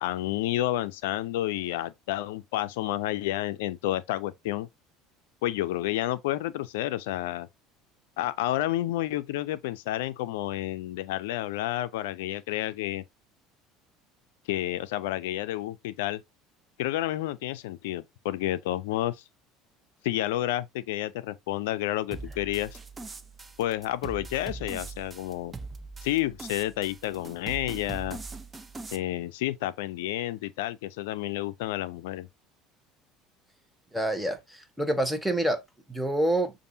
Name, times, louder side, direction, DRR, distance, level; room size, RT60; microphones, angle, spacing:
voice 1, 0.0-4.7 5.4-7.5 8.2-13.0 14.5-16.2 16.8-19.2 20.0-22.8 23.6-25.5 26.0-28.2 28.9-32.3, left 14 dB, 80° left, 0.4 m, -30 dB
sound 1, 22.1-29.0, right 3 dB, 25° right, 0.7 m, -41 dB
voice 2, 33.9-35.6 35.9-36.5, right 1 dB, 5° right, 1.1 m, -27 dB
6.6 x 2.5 x 2.7 m
hypercardioid pair, 80°, 0 cm